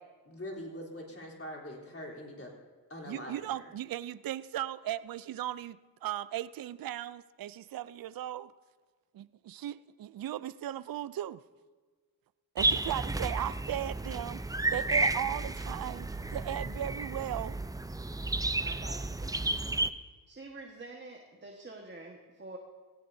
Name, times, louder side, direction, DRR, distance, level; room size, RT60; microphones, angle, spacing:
voice 1, 0.3-2.5 2.9-3.7, left 1 dB, 35° left, -2 dB, 3.6 m, -43 dB
voice 2, 3.0-8.5 9.1-11.4 12.5-14.4 14.7-17.6, right 12 dB, 60° right, 17 dB, 0.5 m, -37 dB
sound 1, 12.6-19.9, right 2 dB, 10° right, 0.5 m, -32 dB
voice 3, 18.4-19.3 20.3-22.6, right 2 dB, 30° right, 1 dB, 1.6 m, -47 dB
16.5 x 16.5 x 2.7 m, 1.4 s
cardioid pair, 55°, 39 cm